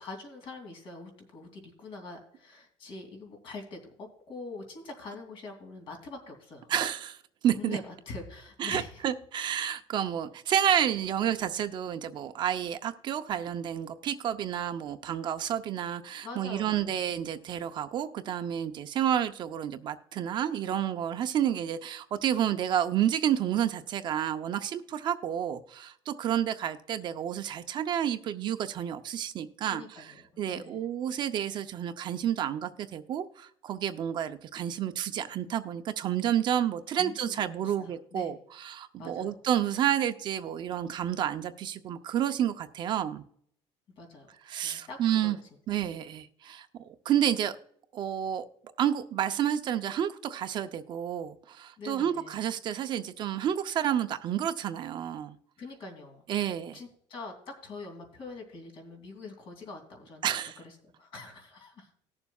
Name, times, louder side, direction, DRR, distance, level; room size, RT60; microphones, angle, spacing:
voice 1, 0.0-6.7 7.5-9.0 16.2-17.0 29.6-30.9 36.9-38.3 39.0-39.4 44.0-44.3 44.6-45.4 46.0-46.1 51.8-52.4 55.6-56.5 56.7-61.9, left 3 dB, 50° left, 2.8 m, -44 dB
voice 2, 6.7-7.2 7.4-7.8 8.6-30.1 30.4-38.4 38.6-43.2 44.5-45.4 45.7-47.5 47.9-48.4 48.8-55.4 56.3-56.8 60.2-60.6, right 10 dB, 45° right, 0.6 m, -30 dB
19.0 x 7.1 x 2.3 m
cardioid pair, 160°, 11 cm